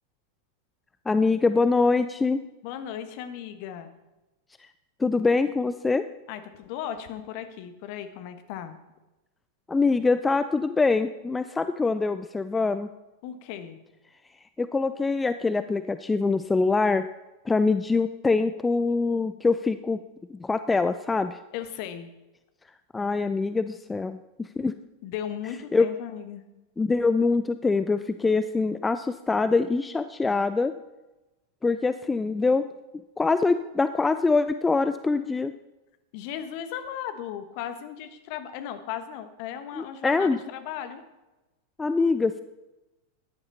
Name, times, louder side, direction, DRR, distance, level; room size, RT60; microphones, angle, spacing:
voice 1, 1.1-2.4 5.0-6.0 9.7-12.9 14.6-17.1 17.5-20.0 20.3-21.4 22.9-24.7 25.7-25.9 26.8-30.7 31.6-32.7 33.2-35.5 39.7-40.4 41.8-42.4, left 4 dB, 10° left, 11 dB, 0.4 m, -24 dB
voice 2, 2.6-3.9 6.3-8.8 13.2-13.8 21.5-22.1 25.0-26.4 36.1-41.0, left 10 dB, 45° left, 9 dB, 1.3 m, -36 dB
14.0 x 10.5 x 4.1 m, 1.0 s
figure-of-eight pair, 90°, 0 cm